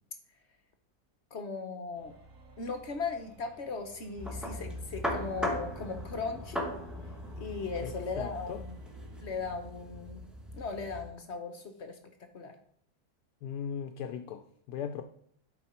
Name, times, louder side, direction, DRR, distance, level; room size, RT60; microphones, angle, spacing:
voice 1, 1.3-2.1 2.6-6.7 7.4-8.8 9.2-10.3 10.5-12.0 12.3-12.6, left 4 dB, 50° left, 1.1 m, -38 dB
sound 1, 2.0-9.5, right 1 dB, 60° right, 1.6 m, -57 dB
sound 2, 4.2-11.1, equal, ahead, 1.2 m, -38 dB
voice 2, 7.8-8.6 13.4-15.0, left 8 dB, 85° left, 1.2 m, -38 dB
11.0 x 4.5 x 4.4 m
omnidirectional pair, 1.6 m